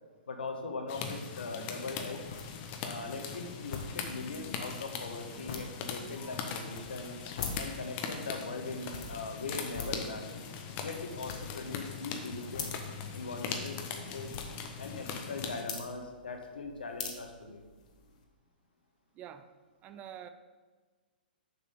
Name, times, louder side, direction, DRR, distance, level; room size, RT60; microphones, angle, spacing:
voice 1, 0.3-2.3 2.8-7.2 7.6-10.5 10.8-12.7 13.1-14.3 14.8-17.6, left 3 dB, 70° left, 4 dB, 1.4 m, -40 dB
sound 1, 0.9-15.6, left 6 dB, 30° left, 1.1 m, -40 dB
sound 2, 2.0-18.2, left 5 dB, 50° left, 1.3 m, -46 dB
voice 2, 19.1-19.5 19.8-20.3, right 9 dB, 25° right, 10 dB, 0.5 m, -46 dB
7.0 x 5.9 x 6.5 m, 1.4 s
figure-of-eight pair, 115°, 5 cm